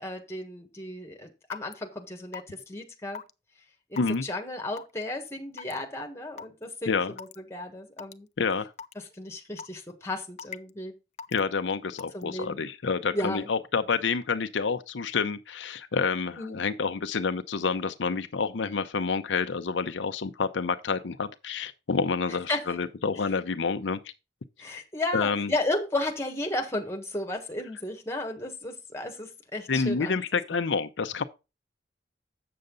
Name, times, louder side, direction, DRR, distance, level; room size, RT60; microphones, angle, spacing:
voice 1, 0.0-3.2 3.9-8.3 8.9-10.9 12.1-12.6 13.1-13.5 16.4-16.6 22.5-22.7 24.6-30.2 30.5-30.6, left 2 dB, 15° left, 1.4 m, -34 dB
Raindrop / Water tap faucet / Drip, 1.5-1.7 2.3-2.6 3.1-3.3 4.0-4.1 4.8-5.0 5.6-5.8 6.4-6.5 7.2-7.4 8.0-8.1 8.8-8.9 9.6-9.9 10.4-10.7 11.2-11.4 12.0-12.2, left 6 dB, 40° left, 0.3 m, -40 dB
voice 2, 4.0-4.3 6.9-7.1 8.4-8.7 11.3-24.1 25.1-25.5 29.7-31.2, left 5 dB, 80° left, 0.6 m, -28 dB
7.7 x 6.7 x 3.8 m
head